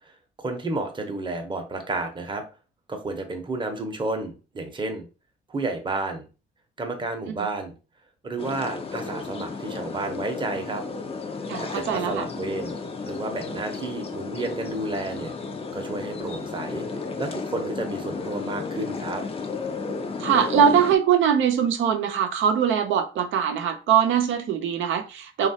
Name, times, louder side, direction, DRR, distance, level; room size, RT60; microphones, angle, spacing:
voice 1, 0.0-2.4 2.9-5.1 5.5-6.3 6.8-7.7 8.2-10.8 11.6-15.3 15.7-16.8 17.2-19.2, right 2 dB, 25° right, 0.7 m, -31 dB
sound 1, 8.4-21.0, left 4 dB, 30° left, 0.5 m, -33 dB
voice 2, 11.5-12.2 20.2-25.5, right 8 dB, 75° right, 0.6 m, -22 dB
3.0 x 2.3 x 2.7 m
cardioid pair, 90°, 20 cm